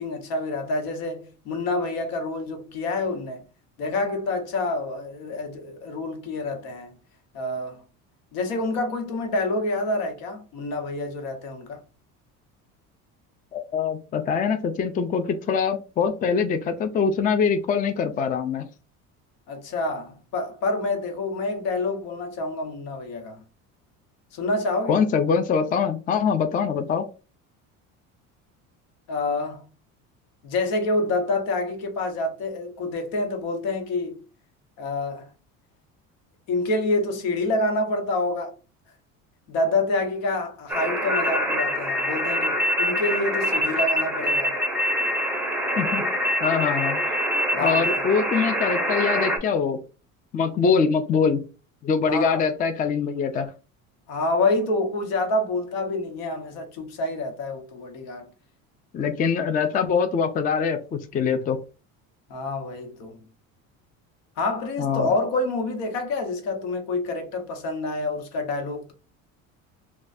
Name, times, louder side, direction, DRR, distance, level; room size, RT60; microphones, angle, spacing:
voice 1, 0.0-3.4 3.8-6.9 7.3-7.8 8.3-11.8 19.5-23.4 24.3-25.0 29.1-29.7 30.4-34.2 34.8-35.3 36.5-38.5 39.5-44.5 47.5-48.0 52.1-52.5 54.1-58.3 62.3-63.2 64.4-68.9, left 2 dB, 80° left, 1.1 m, -27 dB
voice 2, 13.5-18.7 24.9-27.0 45.8-46.0 46.4-47.2 47.6-49.8 50.3-51.4 51.8-53.5 58.9-61.6 64.8-65.1, left 6 dB, 25° left, 0.4 m, -23 dB
sound 1, 40.7-49.4, equal, 5° right, 0.7 m, -25 dB
4.0 x 2.4 x 2.6 m
cardioid pair, 120°, 34 cm